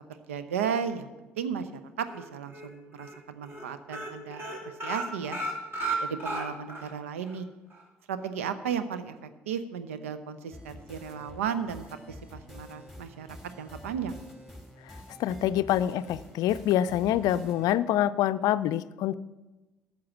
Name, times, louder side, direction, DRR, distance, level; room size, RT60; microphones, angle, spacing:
voice 1, 0.3-5.4 6.0-7.5 8.1-11.9 12.3-13.3 13.6-14.1, right 7 dB, 85° right, 12 dB, 0.7 m, -34 dB
sound 1, 2.1-2.7 3.0-3.2 3.4-3.6 3.9-6.9 7.3-7.4 7.7-7.8, right 2 dB, 35° right, 3.0 m, -34 dB
sound 2, 10.5-17.7, left 1 dB, 5° right, 2.6 m, -47 dB
voice 2, 15.2-19.1, left 12 dB, 65° left, 15 dB, 0.4 m, -26 dB
13.5 x 6.2 x 7.2 m, 1.1 s
hypercardioid pair, 50°, 7 cm